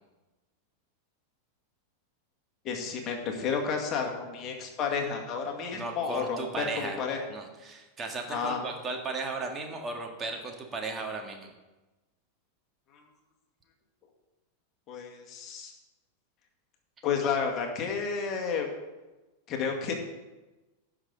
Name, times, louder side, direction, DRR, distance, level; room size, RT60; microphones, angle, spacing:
voice 1, 2.6-7.2 8.3-8.6 12.9-13.0 14.9-15.7 17.0-18.7 19.5-19.9, left 6 dB, 35° left, 2 dB, 1.9 m, -31 dB
voice 2, 5.7-7.0 7.3-11.5, right 3 dB, 20° right, 2 dB, 1.8 m, -36 dB
16.5 x 6.3 x 3.9 m, 1.1 s
figure-of-eight pair, 90°, 0 cm